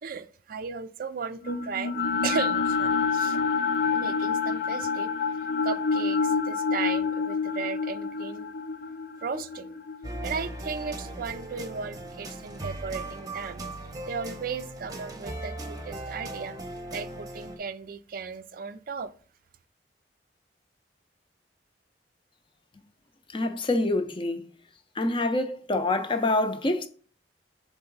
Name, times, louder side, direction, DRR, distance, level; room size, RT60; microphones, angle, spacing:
voice 1, 0.0-1.9 2.2-3.4 3.9-5.1 5.6-8.5 9.2-9.8 10.2-13.6 14.1-16.6 16.9-19.1, right 5 dB, 55° right, 0.4 m, -35 dB
sound 1, 1.4-11.6, left 5 dB, 80° left, 0.6 m, -28 dB
sound 2, 10.0-17.6, right 2 dB, 20° right, 0.8 m, -38 dB
voice 2, 23.3-24.5 25.0-26.9, left 2 dB, 30° left, 0.6 m, -26 dB
7.0 x 3.7 x 3.9 m
head